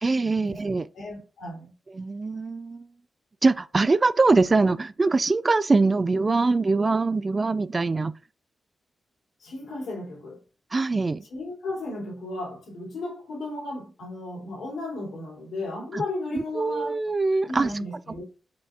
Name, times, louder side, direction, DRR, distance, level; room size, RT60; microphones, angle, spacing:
voice 1, 0.0-0.9 1.9-2.9 3.4-8.1 10.7-11.2 15.9-16.0 16.3-17.7, right 3 dB, 35° right, 0.3 m, -23 dB
voice 2, 0.9-1.7 9.4-10.4 11.3-17.0 17.5-18.2, left 2 dB, 80° left, 2.5 m, -34 dB
5.7 x 2.4 x 3.6 m
cardioid pair, 65°, 0 cm